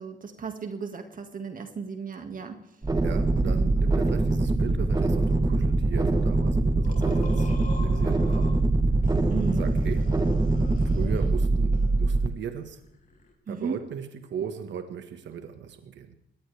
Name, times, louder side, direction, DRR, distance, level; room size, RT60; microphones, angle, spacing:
voice 1, 0.0-2.8 9.3-9.7 13.5-13.8, right 5 dB, 45° right, 5 dB, 2.1 m, -35 dB
sound 1, 2.8-12.3, right 2 dB, 20° right, 1.5 m, -23 dB
voice 2, 3.0-8.6 9.4-10.2 10.8-12.9 13.5-16.2, right 7 dB, 65° right, 7 dB, 1.7 m, -37 dB
sound 2, 6.8-8.6 9.0-11.4 11.7-13.3, left 4 dB, 40° left, 5.0 m, -46 dB
22.0 x 18.5 x 3.5 m, 0.76 s
cardioid pair, 90°, 20 cm